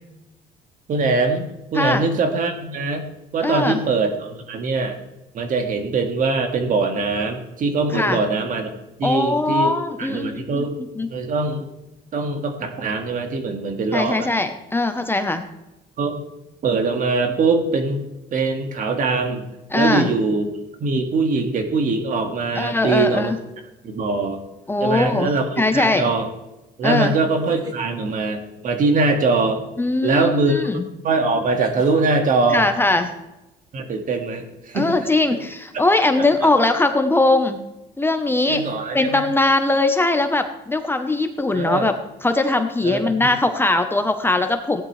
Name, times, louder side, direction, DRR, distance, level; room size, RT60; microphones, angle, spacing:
voice 1, 0.9-1.4 1.7-3.0 3.3-5.0 5.3-8.7 9.0-10.8 11.1-11.7 12.1-14.3 16.0-16.2 16.6-18.1 18.3-19.4 19.7-20.5 20.8-23.3 23.8-24.4 24.8-26.3 26.8-29.6 30.0-30.7 31.0-32.6 33.7-35.1 36.4-36.5 38.5-39.3 41.5-41.9 42.8-43.3, right 3 dB, 50° right, 5 dB, 2.0 m, -22 dB
voice 2, 3.4-3.8 7.9-8.2 9.0-10.6 11.0-11.1 13.9-15.4 19.7-20.1 22.5-23.4 24.7-25.3 25.6-26.0 26.8-27.1 29.8-30.8 32.5-33.1 34.7-37.6 38.0-38.6 38.9-41.9 42.2-44.8, left 2 dB, 15° left, 7 dB, 0.9 m, -20 dB
sound 1, 24.7-25.1 27.2-27.9 30.2-30.3 31.5-32.1, right 1 dB, 25° right, 2.1 m, -39 dB
16.0 x 10.5 x 3.3 m, 0.97 s
cardioid pair, 110°, 17 cm